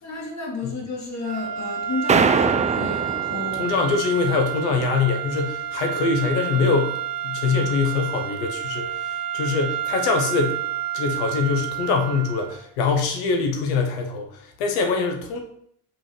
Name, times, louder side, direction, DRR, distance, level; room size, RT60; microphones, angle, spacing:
voice 1, 0.0-3.7, left 3 dB, 35° left, -2 dB, 2.3 m, -32 dB
sound 1, 1.2-12.7, right 10 dB, 50° right, 1.5 m, -30 dB
sound 2, 2.1-4.1, right 5 dB, 15° right, 0.4 m, -22 dB
voice 2, 3.6-7.0 7.2-10.6 10.9-14.3 14.6-15.4, left 4 dB, 70° left, 3 dB, 1.1 m, -23 dB
5.5 x 5.4 x 3.2 m, 0.69 s
figure-of-eight pair, 50°, 48 cm